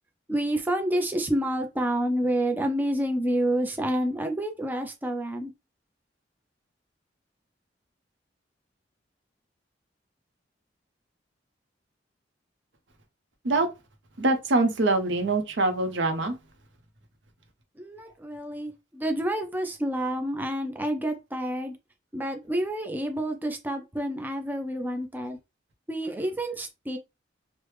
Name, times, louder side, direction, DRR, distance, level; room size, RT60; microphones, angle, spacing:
voice 1, 0.3-5.5 17.8-21.7 22.1-25.4 25.9-27.0, right 1 dB, 10° right, 0.4 m, -28 dB
voice 2, 14.2-16.4, right 2 dB, 75° right, 0.6 m, -24 dB
3.2 x 2.1 x 3.1 m
head